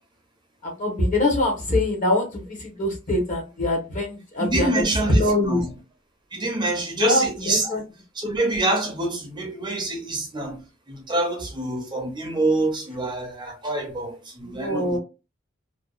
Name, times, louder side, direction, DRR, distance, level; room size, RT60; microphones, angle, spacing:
voice 1, 0.6-4.8 5.1-5.6 7.0-7.8 14.5-15.0, left 1 dB, 40° left, 1.0 m, -23 dB
voice 2, 4.4-5.7 6.3-7.7 8.2-10.6 10.9-15.0, right 2 dB, 20° right, 0.6 m, -26 dB
2.6 x 2.3 x 2.3 m
head